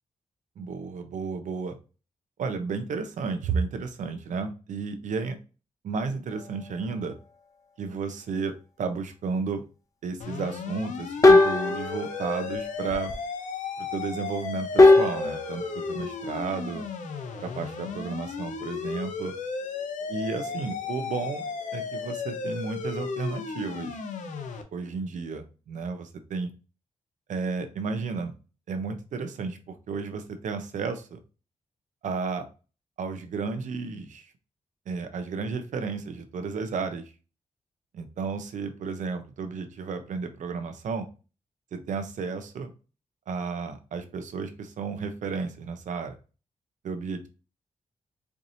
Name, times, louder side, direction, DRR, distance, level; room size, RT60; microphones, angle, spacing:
voice 1, 0.6-1.8 2.4-5.4 5.8-7.2 7.8-9.6 10.0-13.1 13.8-16.8 17.4-19.3 20.1-21.4 21.7-24.0 24.7-26.5 27.3-28.3 28.7-31.2 32.0-32.4 33.0-34.3 34.9-37.0 37.9-41.1 41.7-42.7 43.3-46.1 46.8-47.3, right 5 dB, 80° right, 8 dB, 0.7 m, -32 dB
sound 1, 6.3-7.2 11.2-13.3 14.8-18.2 18.6-18.8 19.6-21.1 21.4-21.7, left 2 dB, 25° left, 0.8 m, -24 dB
sound 2, 10.2-24.6, left 5 dB, 80° left, 0.6 m, -34 dB
4.6 x 2.7 x 2.6 m, 0.33 s
cardioid pair, 75°, 13 cm